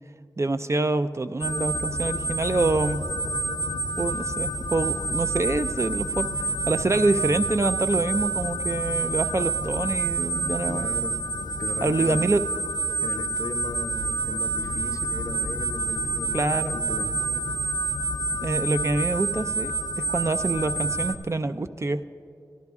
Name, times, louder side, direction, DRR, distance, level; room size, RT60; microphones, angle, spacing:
voice 1, 0.4-3.0 4.0-10.9 11.8-12.4 16.3-16.8 18.4-19.7 20.1-22.0, right 2 dB, 40° right, 11 dB, 0.3 m, -26 dB
sound 1, 1.4-21.2, right 2 dB, 85° left, 0.4 m, -28 dB
voice 2, 10.7-11.2 11.6-12.2 13.0-17.5, left 2 dB, 45° left, 9 dB, 0.7 m, -37 dB
14.0 x 11.5 x 3.6 m, 2.4 s
cardioid pair, 40°, 8 cm